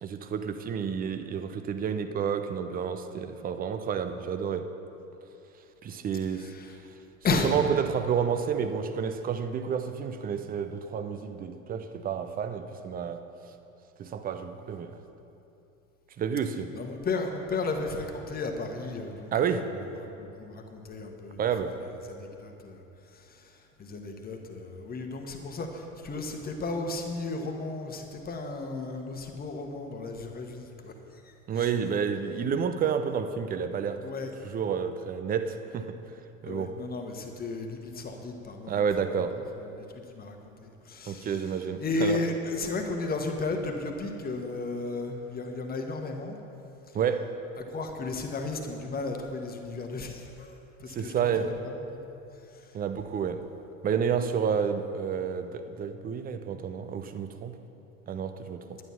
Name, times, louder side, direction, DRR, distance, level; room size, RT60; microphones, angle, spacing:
voice 1, 0.0-4.7 5.8-6.5 7.4-13.2 14.0-15.0 16.2-16.7 19.3-19.7 21.4-21.8 31.5-34.0 34.4-36.0 36.4-36.7 38.7-39.4 41.1-42.2 46.9-47.3 51.0-51.5 52.7-53.4 53.8-57.5 58.1-58.8, right 7 dB, 20° right, 9 dB, 0.6 m, -30 dB
voice 2, 6.3-6.8 7.2-7.5 16.7-21.8 22.0-31.8 34.0-34.3 36.4-38.9 39.6-46.4 46.9-47.0 47.6-52.8, left 3 dB, 20° left, 4 dB, 1.3 m, -35 dB
11.0 x 9.7 x 5.7 m, 2.9 s
figure-of-eight pair, 75°, 41 cm